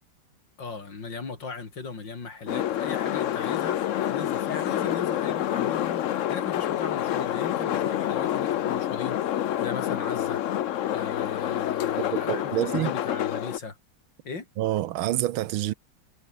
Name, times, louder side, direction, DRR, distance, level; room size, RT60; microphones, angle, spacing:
voice 1, 0.6-10.4 10.9-13.8 14.2-14.5, left 4 dB, 65° left, 4.2 m, -38 dB
sound 1, 2.5-13.6, left 11 dB, 80° left, 0.6 m, -27 dB
voice 2, 12.1-12.9 14.6-15.7, right 14 dB, 85° right, 1.6 m, -27 dB
omnidirectional pair, 2.2 m